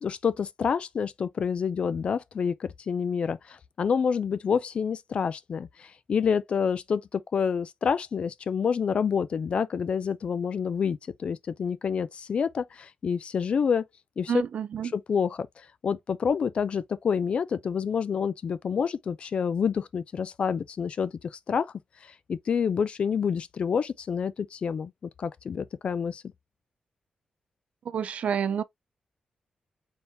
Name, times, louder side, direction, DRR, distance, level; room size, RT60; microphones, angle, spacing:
voice 1, 0.0-13.8 14.2-14.3 14.9-15.5 15.8-21.1 21.5-21.7 22.0-24.9 25.2-26.2, left 6 dB, 50° left, 0.4 m, -28 dB
voice 2, 14.3-14.9 27.9-28.6, right 8 dB, 65° right, 0.4 m, -29 dB
4.3 x 3.5 x 2.6 m
wide cardioid pair, 140°, 2 cm